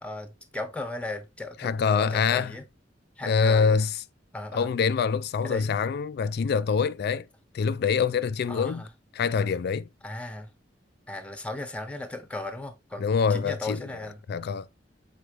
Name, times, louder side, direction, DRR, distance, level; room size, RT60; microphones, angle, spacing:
voice 1, 0.0-2.7 3.2-3.8 4.3-4.7 5.4-5.8 8.5-8.9 10.0-10.5 11.1-14.2, left 2 dB, 5° left, 1.0 m, -36 dB
voice 2, 1.6-2.6 3.2-4.0 4.5-7.3 7.5-8.8 9.1-9.9 13.0-13.8 14.3-14.7, left 5 dB, 60° left, 0.3 m, -25 dB
6.4 x 4.4 x 3.3 m
head